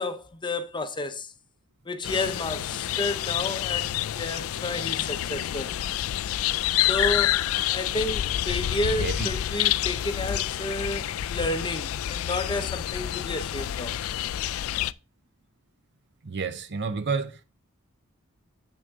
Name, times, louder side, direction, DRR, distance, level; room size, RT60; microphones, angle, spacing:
voice 1, 0.0-1.3 1.9-5.7 6.8-13.9, left 2 dB, 20° left, 0.8 m, -31 dB
sound 1, 2.0-14.9, left 12 dB, 70° left, 0.3 m, -28 dB
voice 2, 9.0-9.3 16.2-17.4, right 4 dB, 55° right, 0.7 m, -30 dB
8.5 x 6.2 x 3.6 m
head